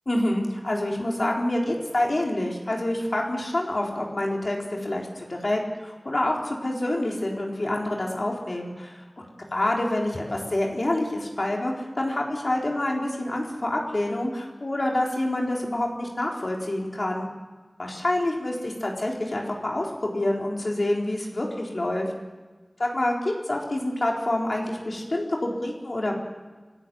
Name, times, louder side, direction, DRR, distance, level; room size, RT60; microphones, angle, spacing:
voice 1, 0.1-9.0 9.5-17.3 17.8-22.1 22.8-26.1, left 1 dB, 65° left, -1 dB, 4.1 m, -27 dB
25.0 x 13.5 x 7.8 m, 1.3 s
wide cardioid pair, 45°, 0 cm